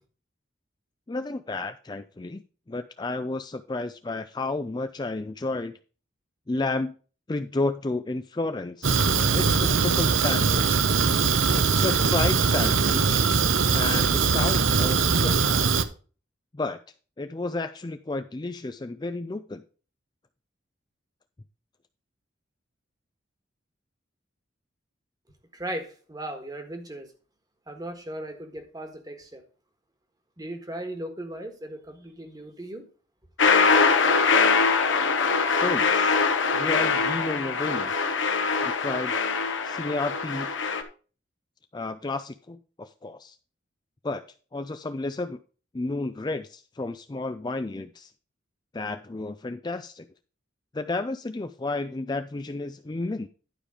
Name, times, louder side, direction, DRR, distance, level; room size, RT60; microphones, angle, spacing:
voice 1, 1.1-2.4 2.7-5.7 6.5-6.9 7.3-10.8 11.5-13.2 13.7-15.5 16.5-16.8 17.2-19.6 35.6-36.2 36.5-37.9 38.6-39.1 39.6-40.5 41.7-43.4 44.0-44.2 44.5-45.4 45.7-48.1 48.7-50.1 50.7-53.3, left 2 dB, 20° left, 8 dB, 0.4 m, -32 dB
Fire, 8.8-15.8, right 5 dB, 85° right, 0.8 m, -22 dB
voice 2, 25.5-27.1 27.7-29.4 30.4-32.9, right 1 dB, 20° right, 6 dB, 1.4 m, -37 dB
sound 1, 33.4-40.8, left 5 dB, 75° left, 1.2 m, -23 dB
11.5 x 5.1 x 4.9 m, 0.37 s
head